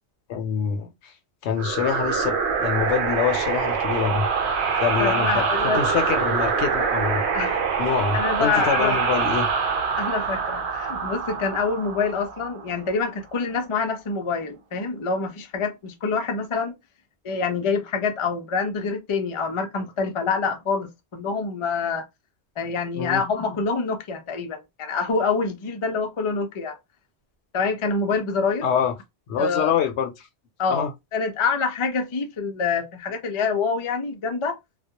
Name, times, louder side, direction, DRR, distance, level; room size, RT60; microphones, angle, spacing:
voice 1, 0.3-1.1 1.4-4.3 4.8-7.2 7.8-9.5 23.0-23.2 28.6-28.9 29.3-30.3 30.7-30.9, left 7 dB, 75° left, 0.9 m, -25 dB
sound 1, 1.6-12.9, right 5 dB, 80° right, 0.9 m, -25 dB
voice 2, 5.0-5.8 7.3-7.7 8.1-9.0 9.9-16.7 17.2-22.0 22.6-26.8 27.5-28.6 29.4-29.7 30.6-34.6, left 5 dB, 45° left, 0.4 m, -26 dB
2.2 x 2.0 x 2.8 m
omnidirectional pair, 1.2 m